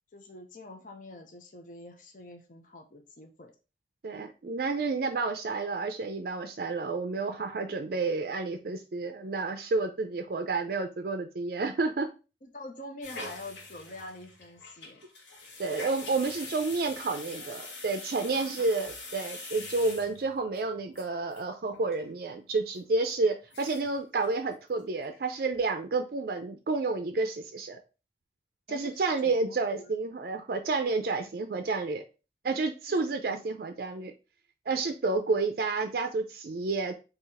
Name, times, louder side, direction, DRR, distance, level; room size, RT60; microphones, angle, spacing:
voice 1, 0.1-3.5 12.4-15.1 18.3-18.7 28.7-29.9 32.9-33.4, left 2 dB, 45° left, 4 dB, 0.7 m, -46 dB
voice 2, 4.0-12.1 15.6-27.8 28.7-32.0 32.4-34.1 34.7-36.9, right 3 dB, 55° right, 6 dB, 0.4 m, -30 dB
sound 1, 13.0-20.6 21.0-21.1 21.3-21.4 21.7-22.1 22.4-22.5 23.0-23.1 23.4-24.0 24.2-24.3 24.7-25.2 25.5-25.6, left 3 dB, 90° left, 1.3 m, -44 dB
3.9 x 2.8 x 4.1 m, 0.32 s
head